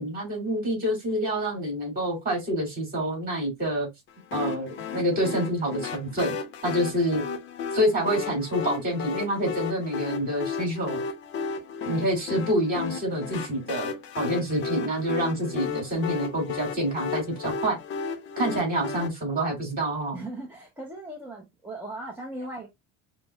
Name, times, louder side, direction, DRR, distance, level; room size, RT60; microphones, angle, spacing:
voice 1, 0.0-3.9 4.3-6.4 6.6-7.2 7.7-11.0 11.8-17.8 18.4-20.2, right 1 dB, 25° right, 2.5 m, -27 dB
sound 1, 4.3-19.1, left 6 dB, 35° left, 0.6 m, -34 dB
voice 2, 20.1-22.7, right 1 dB, 5° right, 0.6 m, -38 dB
5.8 x 2.0 x 2.3 m
cardioid pair, 150°, 33 cm